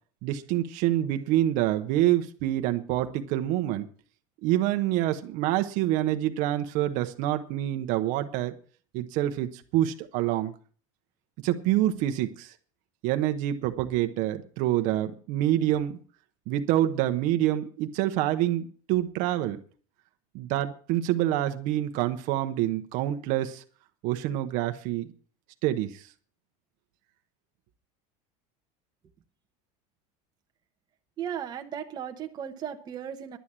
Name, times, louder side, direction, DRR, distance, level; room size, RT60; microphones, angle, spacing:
voice 1, 0.2-3.9 4.4-8.5 8.9-10.5 11.4-12.5 13.0-16.0 16.5-19.6 20.3-23.6 24.0-25.1 25.6-26.1, right 13 dB, 50° right, 8 dB, 0.9 m, -26 dB
voice 2, 31.2-33.4, right 9 dB, 25° right, 4 dB, 1.0 m, -36 dB
11.5 x 8.3 x 7.4 m, 0.43 s
cardioid pair, 170°, 17 cm